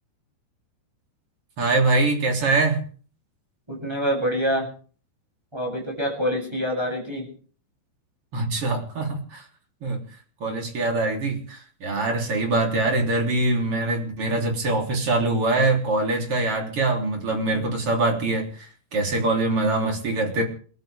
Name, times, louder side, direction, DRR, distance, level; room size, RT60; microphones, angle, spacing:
voice 1, 1.6-2.8 8.3-9.5 9.8-10.0 10.4-20.4, right 2 dB, 30° right, 1 dB, 3.9 m, -23 dB
voice 2, 3.7-4.7 5.5-7.3, equal, 5° right, 0 dB, 7.7 m, -26 dB
30.0 x 13.0 x 3.6 m, 0.43 s
omnidirectional pair, 5.5 m